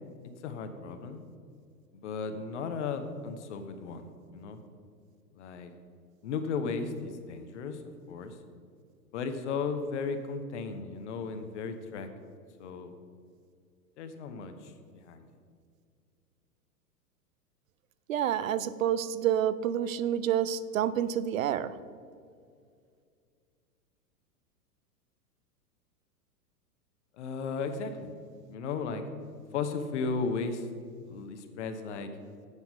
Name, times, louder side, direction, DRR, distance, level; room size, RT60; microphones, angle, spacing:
voice 1, 0.4-1.2 1.9-4.6 5.3-5.7 6.2-7.8 8.1-8.4 9.1-12.1 12.6-12.9 14.0-14.7 15.0-15.3 27.2-28.1 28.5-29.0 29.5-30.7 31.1-32.1, left 5 dB, 50° left, 8 dB, 0.8 m, -35 dB
voice 2, 18.1-21.7, right 10 dB, 60° right, 15 dB, 0.6 m, -28 dB
8.1 x 6.9 x 5.3 m, 2.2 s
figure-of-eight pair, 100°, 47 cm